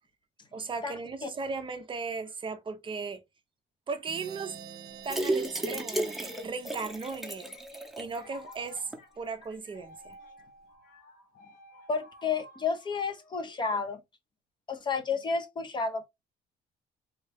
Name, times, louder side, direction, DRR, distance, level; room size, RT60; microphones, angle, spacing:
voice 1, 0.5-3.2 3.9-4.6 5.0-8.9 9.2-10.2, right 4 dB, 30° right, 0.5 m, -37 dB
sound 1, 4.1-7.6, right 8 dB, 75° right, 0.6 m, -48 dB
sound 2, 5.0-8.2 8.5-8.6 8.9-9.0, right 1 dB, ahead, 0.8 m, -33 dB
sound 3, 6.4-14.0, left 1 dB, 60° left, 1.2 m, -54 dB
voice 2, 11.9-14.0 14.7-16.1, left 5 dB, 30° left, 0.6 m, -31 dB
3.6 x 2.2 x 3.3 m
cardioid pair, 110°, 17 cm